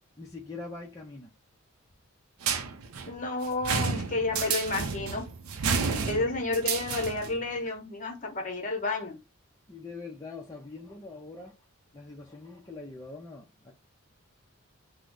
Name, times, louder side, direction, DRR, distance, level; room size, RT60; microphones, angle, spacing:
voice 1, 0.2-1.3 5.8-6.2 9.7-11.6 11.9-13.7, left 3 dB, 15° left, 0.4 m, -43 dB
sound 1, 2.4-7.4, right 5 dB, 85° right, 0.5 m, -31 dB
voice 2, 3.0-5.3 6.1-9.2, left 2 dB, 35° left, 0.8 m, -31 dB
3.1 x 2.0 x 3.6 m
head